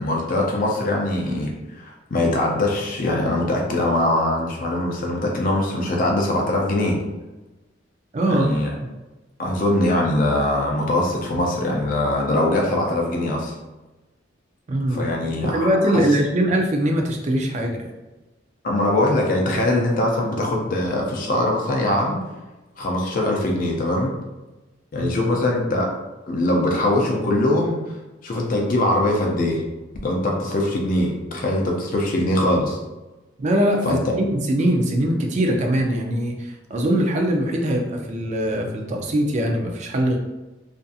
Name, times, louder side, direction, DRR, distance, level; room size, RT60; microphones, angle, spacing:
voice 1, 0.0-7.0 8.3-8.7 9.4-13.5 14.9-16.0 18.6-22.2 22.8-24.1 24.9-25.9 26.3-27.8 28.2-29.6 30.0-32.8 33.8-34.1, left 1 dB, 45° left, 0 dB, 0.4 m, -22 dB
voice 2, 8.1-8.5 14.7-15.0 15.5-17.9 25.0-25.1 33.4-40.2, right 1 dB, 40° right, 1 dB, 0.4 m, -22 dB
2.6 x 2.5 x 2.3 m, 1.1 s
head